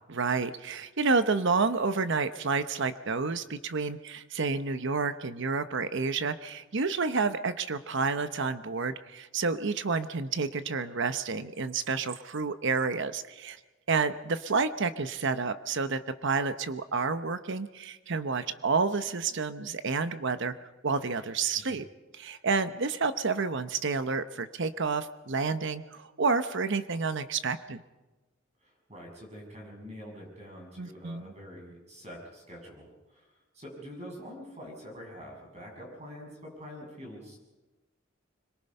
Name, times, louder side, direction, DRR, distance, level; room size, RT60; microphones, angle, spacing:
voice 1, 0.1-13.6 13.9-20.5 20.8-21.9 22.1-27.8 30.8-31.3, right 4 dB, 65° right, 11 dB, 0.9 m, -29 dB
voice 2, 28.6-33.3 33.5-37.4, equal, 35° right, 0 dB, 7.1 m, -45 dB
25.5 x 22.5 x 5.5 m, 1.1 s
head